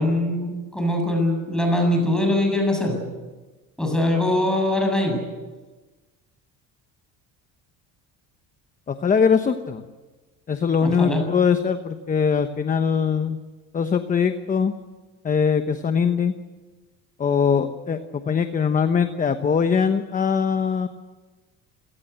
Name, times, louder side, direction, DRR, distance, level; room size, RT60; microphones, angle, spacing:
voice 1, 0.0-3.1 3.8-5.2 10.8-11.2, left 1 dB, ahead, 2 dB, 7.5 m, -22 dB
voice 2, 8.9-9.8 10.5-13.4 13.7-14.7 15.2-16.3 17.2-20.9, left 6 dB, 25° left, 8 dB, 1.1 m, -21 dB
27.5 x 18.0 x 8.2 m, 1.2 s
cardioid pair, 140°, 33 cm